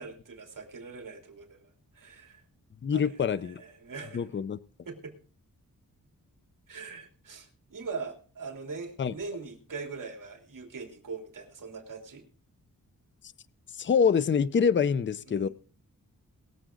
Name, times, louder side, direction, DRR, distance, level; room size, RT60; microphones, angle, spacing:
voice 1, 0.0-2.4 2.9-4.3 4.8-5.2 6.7-12.3 15.3-15.5, right 4 dB, 65° right, 3.3 m, -42 dB
voice 2, 2.8-3.6 4.1-4.6 9.0-9.1 13.8-15.5, left 6 dB, 35° left, 0.5 m, -25 dB
22.0 x 7.5 x 3.8 m
wide cardioid pair, 145°, 34 cm